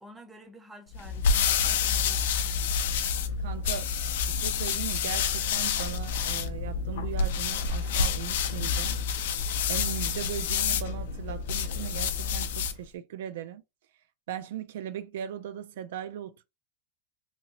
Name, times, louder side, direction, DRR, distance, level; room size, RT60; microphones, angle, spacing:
voice 1, 0.0-2.8, equal, 5° right, 0.6 m, -50 dB
sound 1, 0.9-12.8, left 6 dB, 65° left, 0.4 m, -28 dB
voice 2, 3.4-3.9 4.3-9.0 9.7-13.6 14.3-16.4, right 10 dB, 60° right, 0.3 m, -38 dB
2.9 x 2.8 x 2.8 m
supercardioid pair, 175°, 0 cm